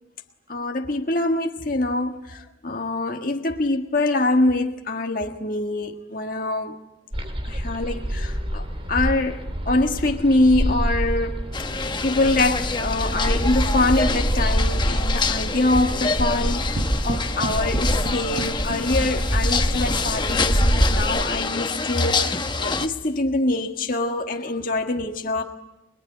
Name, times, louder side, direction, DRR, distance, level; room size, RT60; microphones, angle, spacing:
voice 1, 0.5-6.8 7.5-11.4 11.8-25.4, left 2 dB, 45° left, 1.7 m, -24 dB
sound 1, 7.1-21.0, equal, 30° right, 2.5 m, -26 dB
sound 2, 11.5-22.9, left 4 dB, 25° left, 1.0 m, -27 dB
sound 3, 16.4-19.6, right 2 dB, 45° right, 1.3 m, -34 dB
26.0 x 22.0 x 9.3 m
head